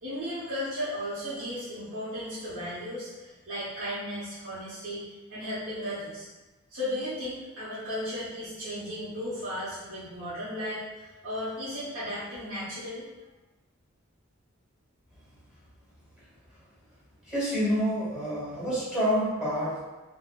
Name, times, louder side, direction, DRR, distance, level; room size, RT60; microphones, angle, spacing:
voice 1, 0.0-5.0 5.3-6.3 6.7-13.0, equal, 90° right, -13 dB, 0.9 m, -35 dB
voice 2, 17.3-19.8, equal, 5° right, -9 dB, 1.0 m, -28 dB
3.7 x 2.1 x 2.3 m, 1.2 s
head